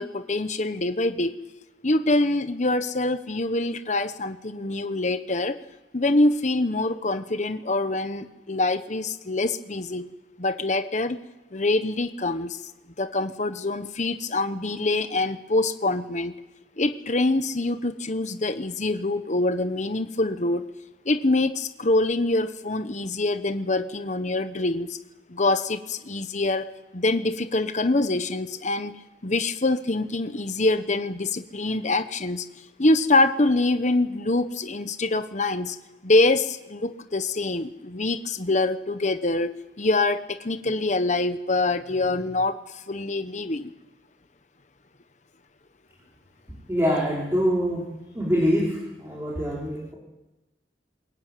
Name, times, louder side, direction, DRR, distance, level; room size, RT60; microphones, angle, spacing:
voice 1, 0.0-1.3 1.8-5.6 5.9-10.1 10.4-11.2 11.5-12.6 13.0-16.3 16.8-20.6 21.0-25.0 25.3-26.7 26.9-29.0 29.2-32.4 32.8-35.8 36.0-42.6 42.9-43.7, left 2 dB, 40° left, 9 dB, 1.1 m, -25 dB
voice 2, 46.7-47.8 48.1-49.9, equal, 15° right, -5 dB, 5.0 m, -24 dB
22.5 x 21.5 x 9.3 m, 1.0 s
head